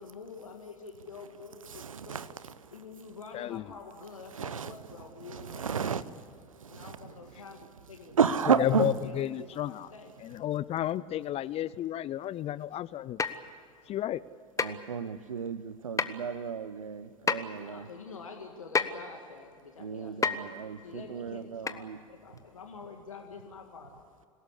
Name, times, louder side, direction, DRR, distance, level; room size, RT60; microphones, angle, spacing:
voice 1, 0.0-2.4 2.7-6.2 6.7-7.6 7.9-8.2 8.7-10.1 17.5-20.5 20.8-23.9, left 4 dB, 85° left, 2.0 m, -47 dB
voice 2, 1.8-2.3 4.3-4.7 5.3-6.0 6.6-6.9 8.2-8.9 14.6-17.8 19.8-22.0, right 6 dB, 85° right, 0.9 m, -32 dB
voice 3, 3.3-3.6 8.5-9.9 10.2-13.2 13.9-14.2, left 12 dB, 35° left, 0.6 m, -32 dB
sound 1, 13.2-13.5 14.6-14.8 16.0-16.2 17.3-17.4 18.8-19.0 20.2-20.5 21.7-21.8 22.4-22.5, left 5 dB, 20° left, 1.2 m, -28 dB
27.0 x 17.5 x 8.3 m
figure-of-eight pair, 80°, 17 cm